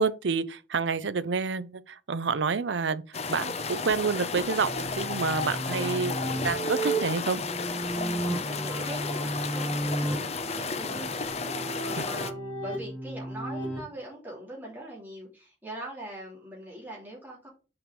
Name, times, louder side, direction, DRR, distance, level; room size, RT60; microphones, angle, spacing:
voice 1, 0.0-3.0 3.3-7.4, right 5 dB, 70° right, 0.6 m, -28 dB
sound 1, 3.1-12.3, left 4 dB, 35° left, 0.6 m, -33 dB
sound 2, 4.6-13.8, right 1 dB, 5° left, 2.5 m, -33 dB
voice 2, 7.9-17.5, right 1 dB, 10° right, 3.0 m, -42 dB
5.8 x 5.3 x 5.1 m
head